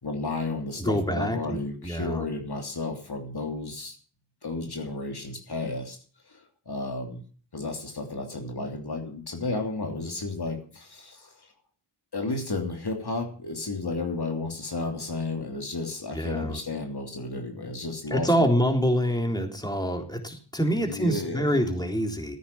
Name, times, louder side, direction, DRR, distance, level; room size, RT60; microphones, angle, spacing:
voice 1, 0.0-4.0 4.4-6.0 6.2-7.2 7.5-11.5 12.1-18.5 20.7-21.6, left 3 dB, 60° left, 3 dB, 3.1 m, -33 dB
voice 2, 0.8-2.2 16.1-16.6 18.1-22.4, equal, 10° left, 3 dB, 3.5 m, -26 dB
14.0 x 9.7 x 7.2 m, 0.42 s
cardioid pair, 40°, 45 cm